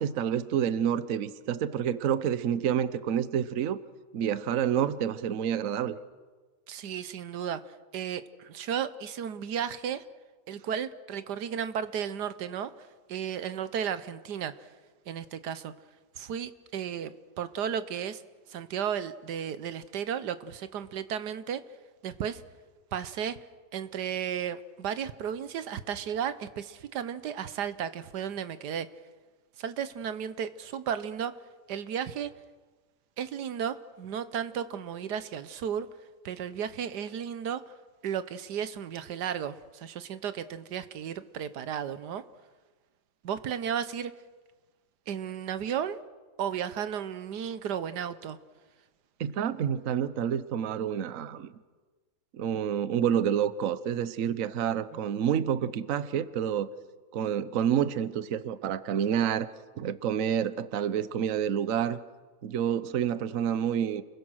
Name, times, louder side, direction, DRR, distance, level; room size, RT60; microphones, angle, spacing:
voice 1, 0.0-3.8 4.1-6.0 49.2-51.5 52.3-56.7 57.1-59.5 59.8-62.0 62.4-64.0, right 9 dB, 60° right, 14 dB, 1.2 m, -28 dB
voice 2, 6.7-10.0 10.5-14.7 15.1-15.7 16.2-18.2 18.5-21.6 22.0-22.4 22.9-23.4 23.7-28.9 29.6-31.4 31.7-32.3 33.2-35.9 36.2-37.7 38.0-42.2 43.2-44.1 45.1-46.0 46.4-48.4 54.9-55.0, right 8 dB, 80° right, 13 dB, 1.5 m, -34 dB
30.0 x 22.0 x 6.4 m, 1.4 s
omnidirectional pair, 1.7 m